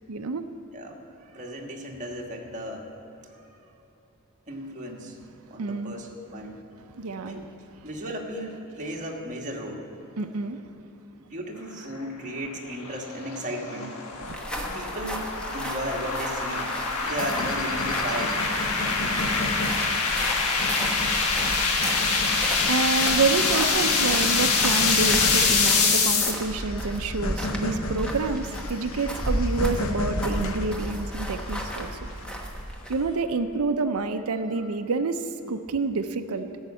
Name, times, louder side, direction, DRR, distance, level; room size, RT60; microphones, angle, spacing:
voice 1, 0.1-0.5 5.6-5.9 7.0-7.4 10.2-10.6 14.3-14.4 21.8-32.1 32.9-36.5, right 4 dB, 70° right, 7 dB, 0.5 m, -28 dB
voice 2, 0.7-2.9 3.3-3.6 4.5-5.2 5.5-6.6 7.2-7.5 7.8-9.8 11.1-13.9 14.5-15.3 15.5-16.7 17.0-19.6 34.5-34.6, equal, 35° right, -1 dB, 1.5 m, -35 dB
sound 1, 12.4-26.3, left 4 dB, 90° left, 1.3 m, -25 dB
sound 2, 14.2-33.1, equal, 5° left, 1.1 m, -34 dB
sound 3, 17.1-32.5, left 1 dB, 65° left, 0.9 m, -35 dB
13.5 x 6.4 x 8.3 m, 3.0 s
head